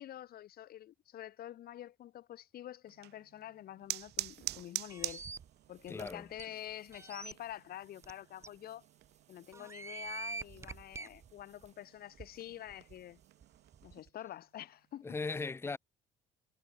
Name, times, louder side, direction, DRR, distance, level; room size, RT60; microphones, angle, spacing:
voice 1, 0.0-5.2 5.7-8.8 9.3-13.2 13.8-15.1, left 12 dB, 65° left, 4.7 m, -47 dB
sound 1, 2.9-14.0, right 16 dB, 80° right, 3.8 m, -47 dB
sound 2, 3.8-14.1, right 7 dB, 40° right, 5.7 m, -62 dB
sound 3, 4.9-5.4 6.0-6.1 6.4-6.5 6.9-7.3 8.0-8.1 8.4-8.5 9.5-11.1, right 3 dB, 15° right, 0.8 m, -43 dB
voice 2, 5.9-6.3 15.0-15.8, left 4 dB, 15° left, 0.6 m, -38 dB
cardioid pair, 110°, 17 cm